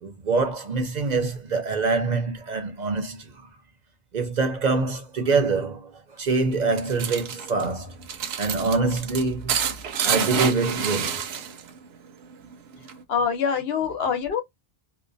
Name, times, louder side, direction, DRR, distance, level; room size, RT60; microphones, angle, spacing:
voice 1, 0.0-3.5 4.1-7.9 8.4-9.5 10.0-11.2, right 4 dB, 50° right, 0.6 m, -25 dB
sound 1, 6.5-11.8 12.0-13.0, right 7 dB, 80° right, 0.8 m, -28 dB
voice 2, 13.1-14.4, left 6 dB, 75° left, 0.9 m, -24 dB
2.5 x 2.2 x 2.5 m
omnidirectional pair, 1.0 m